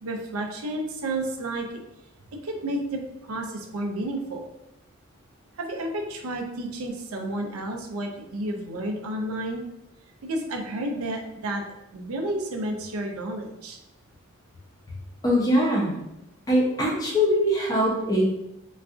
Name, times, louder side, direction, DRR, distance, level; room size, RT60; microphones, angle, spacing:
voice 1, 0.0-1.7 2.4-3.0 3.3-4.4 5.6-9.6 10.2-11.6 11.9-13.8, right 1 dB, 90° right, 2 dB, 0.5 m, -31 dB
voice 2, 15.2-16.0 16.5-18.3, equal, 15° left, -3 dB, 0.6 m, -22 dB
3.9 x 2.3 x 2.4 m, 0.86 s
head